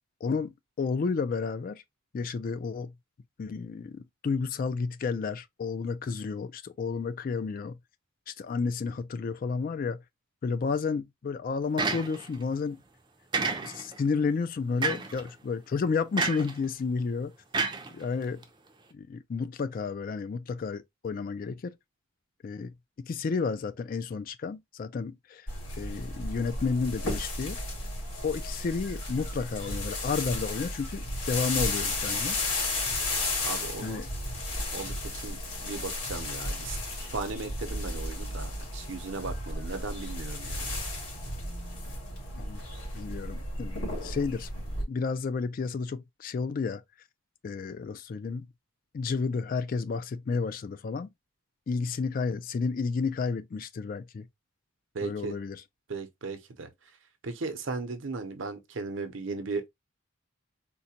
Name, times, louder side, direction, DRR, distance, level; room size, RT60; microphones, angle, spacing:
voice 1, 0.2-1.8 2.1-2.9 3.4-7.8 8.3-10.0 10.4-12.8 13.6-17.3 17.9-18.4 18.9-21.8 22.4-22.7 23.0-25.5 25.8-27.6 28.2-32.4 33.8-34.1 42.4-42.6 42.9-44.5 44.9-46.8 47.4-48.5 48.9-51.1 51.7-54.2 55.0-55.6, left 5 dB, 45° left, 0.3 m, -31 dB
sound 1, 11.8-12.4 13.3-14.0 14.8-15.2 16.2-16.6 17.5-18.4, right 4 dB, 25° right, 0.5 m, -30 dB
sound 2, 25.5-44.8, left 2 dB, 90° left, 2.2 m, -34 dB
voice 2, 33.4-34.0 34.7-36.8 37.1-40.8 54.9-55.4 55.9-56.7 57.2-59.7, right 3 dB, 70° right, 0.7 m, -36 dB
3.8 x 2.1 x 2.7 m
head